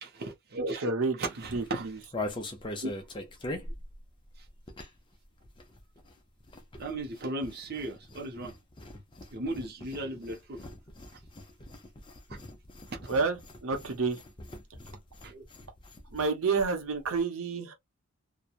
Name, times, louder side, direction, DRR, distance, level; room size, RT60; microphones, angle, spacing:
voice 1, 0.0-0.9 1.2-1.9 2.8-2.9 4.4-4.5 6.8-8.6 9.3-10.7 12.9-13.0 15.2-15.4, right 2 dB, 50° right, 0.7 m, -36 dB
voice 2, 0.8-1.2 1.5-2.0 13.1-14.2 16.1-17.7, right 4 dB, 85° right, 0.8 m, -29 dB
sound 1, 1.4-5.1 5.4-16.3 16.6-16.7 16.9-17.2, left 1 dB, 25° left, 0.5 m, -42 dB
2.9 x 2.2 x 2.4 m
head